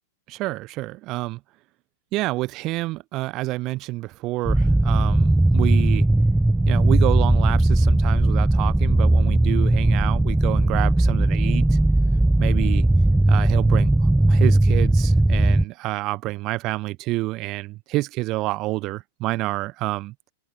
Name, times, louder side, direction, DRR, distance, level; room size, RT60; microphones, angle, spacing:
voice 1, 0.3-1.4 2.1-6.1 6.7-11.8 12.4-12.8 13.3-20.1, right 19 dB, 35° right, 1.2 m, -28 dB
sound 1, 4.5-15.6, right 1 dB, 5° right, 0.3 m, -18 dB
open air
figure-of-eight pair, 95°, 0 cm